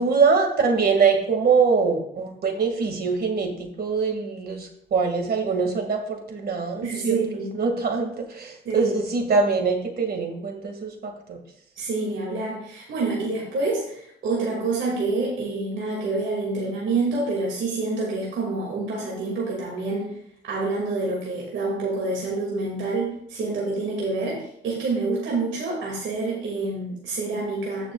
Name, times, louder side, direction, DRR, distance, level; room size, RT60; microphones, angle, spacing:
voice 1, 0.0-7.2 7.5-11.4, right 5 dB, 50° right, 3 dB, 2.0 m, -23 dB
voice 2, 6.8-7.6 8.6-9.0 11.8-20.1 20.4-27.9, right 3 dB, 75° right, -3 dB, 2.3 m, -27 dB
14.5 x 6.0 x 2.4 m, 0.71 s
cardioid pair, 90°, 20 cm